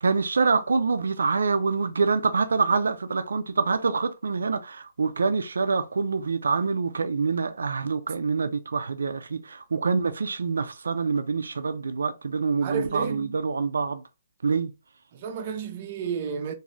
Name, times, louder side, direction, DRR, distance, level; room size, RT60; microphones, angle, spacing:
voice 1, 0.0-14.0 14.4-14.7, right 4 dB, 85° right, 0.4 m, -26 dB
voice 2, 12.6-13.4 15.1-16.5, right 6 dB, 40° right, 0.6 m, -31 dB
2.6 x 2.4 x 3.1 m
hypercardioid pair, 150°, 0 cm